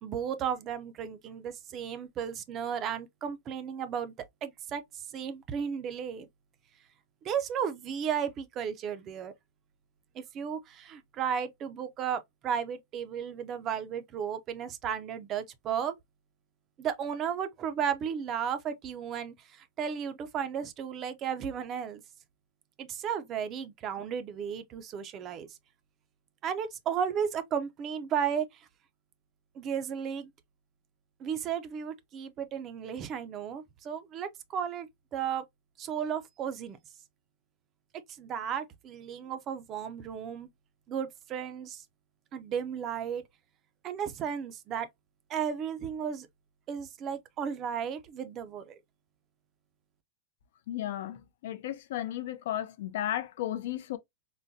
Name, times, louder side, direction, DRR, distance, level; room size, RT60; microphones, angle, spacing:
voice 1, 0.0-4.1 4.4-4.8 5.1-6.3 7.2-9.3 10.3-16.0 16.8-22.0 22.8-25.5 26.4-28.7 29.6-30.3 31.2-35.4 35.8-36.8 38.2-40.5 40.9-41.8 42.3-43.2 43.8-44.9 45.3-46.3 46.7-48.8, right 8 dB, 30° right, 0.5 m, -34 dB
voice 2, 50.7-54.0, left 12 dB, 70° left, 0.5 m, -34 dB
3.8 x 2.1 x 2.6 m
supercardioid pair, 150°, 0 cm